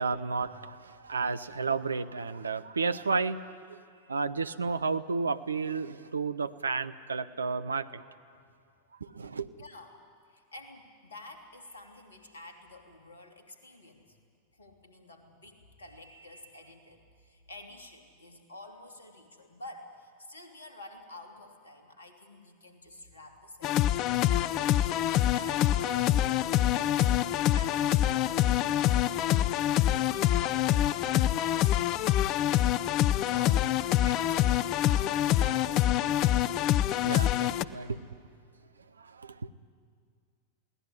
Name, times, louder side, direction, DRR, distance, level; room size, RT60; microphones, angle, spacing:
voice 1, 0.0-3.4 3.7-3.8 4.1-8.0 9.0-9.6 37.0-38.0 39.0-39.5, right 4 dB, 75° right, 13 dB, 0.7 m, -32 dB
voice 2, 9.6-10.0 10.3-14.2 14.5-26.2 26.6-27.1 27.5-33.7 34.0-36.4, left 1 dB, 70° left, 3 dB, 2.9 m, -49 dB
sound 1, 23.6-37.6, left 12 dB, 40° left, 0.6 m, -26 dB
22.0 x 17.5 x 9.9 m, 2.1 s
figure-of-eight pair, 90°, 0 cm